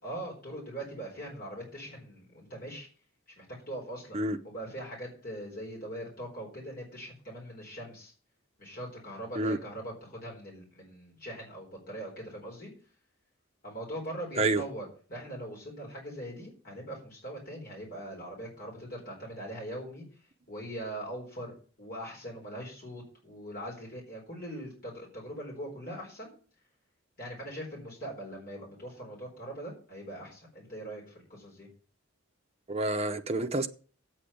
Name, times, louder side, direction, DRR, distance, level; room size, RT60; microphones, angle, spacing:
voice 1, 0.0-2.9 3.4-4.2 4.4-8.1 8.6-12.7 13.6-26.3 27.2-31.7, right 1 dB, 40° left, 4.2 m, -41 dB
voice 2, 32.7-33.7, right 2 dB, 30° right, 0.7 m, -28 dB
8.7 x 6.7 x 8.6 m
head